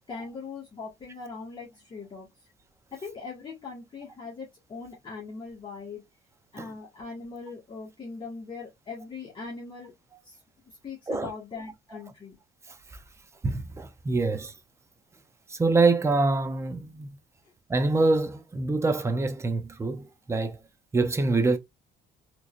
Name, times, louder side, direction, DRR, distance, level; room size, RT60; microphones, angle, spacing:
voice 1, 0.1-2.3 2.9-6.0 6.5-9.9 10.2-10.3 10.8-12.4, left 4 dB, 30° left, 1.5 m, -40 dB
voice 2, 13.4-14.5 15.5-17.1 17.7-20.6 20.9-21.6, right 3 dB, 15° right, 0.6 m, -25 dB
3.7 x 3.1 x 2.4 m
cardioid pair, 110°, 17 cm